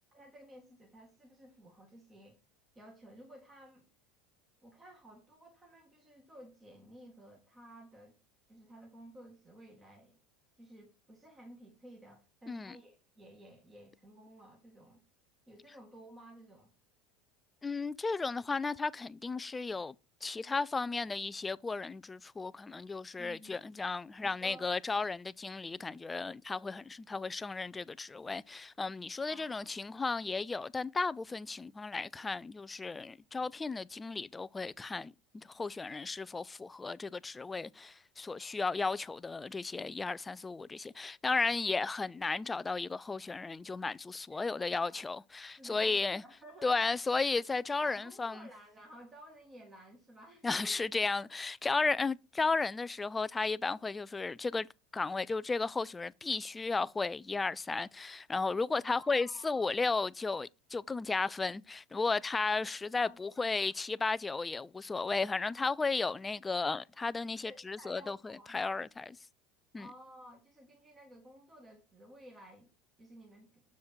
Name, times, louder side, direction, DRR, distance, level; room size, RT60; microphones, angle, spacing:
voice 1, 0.1-2.4 2.8-3.9 4.6-8.2 8.5-10.2 10.6-15.0 15.5-16.7 23.2-23.6 24.2-24.7 29.3-29.7 44.3-45.0 45.5-46.8 47.3-47.4 47.8-50.8 58.8-59.7 63.0-63.5 64.0-64.1 67.4-68.9 69.7-72.7 73.0-73.6, right 1 dB, 15° right, 1.9 m, -54 dB
voice 2, 17.6-19.9 20.2-46.2 46.6-48.5 50.4-54.7 54.9-69.0 69.7-69.9, left 4 dB, 15° left, 0.3 m, -34 dB
7.1 x 4.9 x 4.4 m
supercardioid pair, 125°, 0 cm